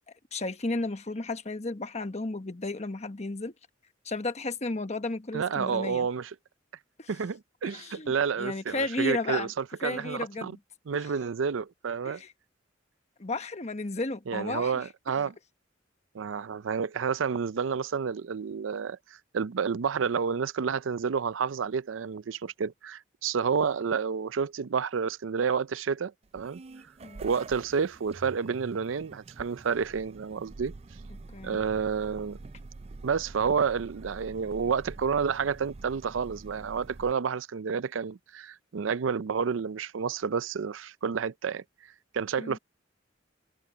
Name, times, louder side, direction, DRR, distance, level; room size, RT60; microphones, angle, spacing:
voice 1, 0.3-3.5 4.0-6.1 7.0-7.1 7.6-9.5 9.8-10.6 12.0-12.3 13.2-14.9 27.0-27.2 31.3-31.6 42.4-42.6, left 2 dB, 35° left, 1.2 m, -33 dB
voice 2, 5.3-6.3 7.1-10.5 10.9-12.2 14.3-15.3 16.1-26.6 27.2-30.7 31.4-32.4 33.0-41.6 42.1-42.6, right 6 dB, 90° right, 0.5 m, -30 dB
sound 1, 26.2-37.1, right 3 dB, 30° right, 0.4 m, -47 dB
head